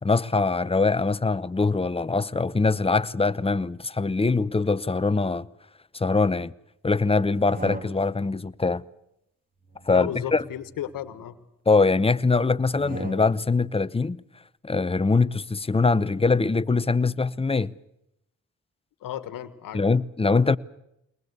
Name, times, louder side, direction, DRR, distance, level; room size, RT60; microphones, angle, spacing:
voice 1, 0.0-5.5 5.9-6.5 6.8-8.8 9.9-10.4 11.7-14.2 14.6-17.7 19.7-20.6, left 3 dB, 15° left, 0.8 m, -23 dB
sound 1, 7.3-8.4 9.6-11.3 12.6-13.6, right 2 dB, 25° right, 3.1 m, -40 dB
voice 2, 9.9-11.4 19.0-19.8, left 11 dB, 85° left, 1.6 m, -34 dB
22.0 x 20.5 x 8.1 m
supercardioid pair, 60°, 33 cm